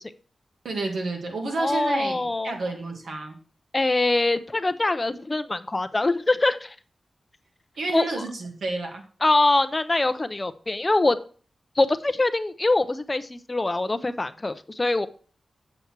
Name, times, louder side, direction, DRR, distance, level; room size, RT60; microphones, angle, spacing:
voice 1, 0.6-3.4 7.8-9.0, right 2 dB, 80° right, 3 dB, 2.1 m, -30 dB
voice 2, 1.6-2.6 3.7-6.7 7.9-8.1 9.2-11.2 11.8-15.1, left 2 dB, 20° left, 12 dB, 0.5 m, -23 dB
7.9 x 6.9 x 4.5 m, 0.41 s
wide cardioid pair, 155°, 0 cm